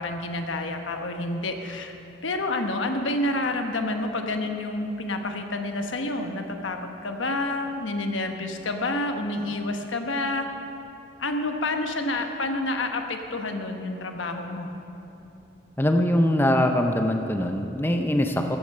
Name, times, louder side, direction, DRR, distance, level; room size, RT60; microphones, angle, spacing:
voice 1, 0.0-1.9 2.2-10.5 11.2-14.7, left 2 dB, 85° left, 5 dB, 1.1 m, -29 dB
voice 2, 15.8-18.6, left 1 dB, 10° left, 5 dB, 0.5 m, -22 dB
14.0 x 8.3 x 6.6 m, 2.9 s
head